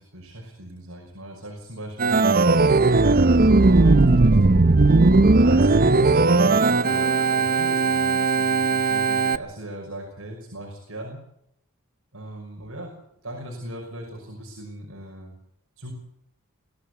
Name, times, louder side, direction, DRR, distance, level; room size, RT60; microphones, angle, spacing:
voice 1, 0.0-2.6 3.4-5.0 5.4-11.2 12.1-12.9 13.2-15.3 15.8-15.9, right 1 dB, 70° right, 0 dB, 5.8 m, -37 dB
Organ, 2.0-9.4, right 3 dB, 40° right, 0.8 m, -17 dB
22.5 x 16.0 x 8.3 m, 0.71 s
head